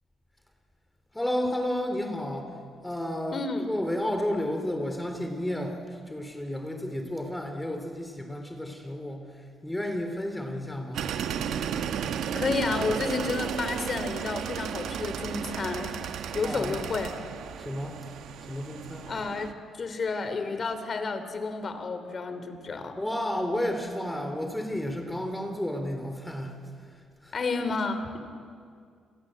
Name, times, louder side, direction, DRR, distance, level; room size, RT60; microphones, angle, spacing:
voice 1, 1.1-2.5 2.8-9.3 9.6-11.1 16.4-16.8 17.6-18.0 18.5-19.1 23.0-26.6 27.2-27.4, left 1 dB, 10° left, 5 dB, 3.5 m, -32 dB
voice 2, 3.3-3.7 12.3-15.9 16.3-17.1 19.1-23.0 27.3-28.2, left 4 dB, 45° left, 9 dB, 3.3 m, -31 dB
sound 1, 10.9-19.5, right 8 dB, 75° right, 1.5 m, -34 dB
29.5 x 22.5 x 7.9 m, 2.2 s
cardioid pair, 90°, 0 cm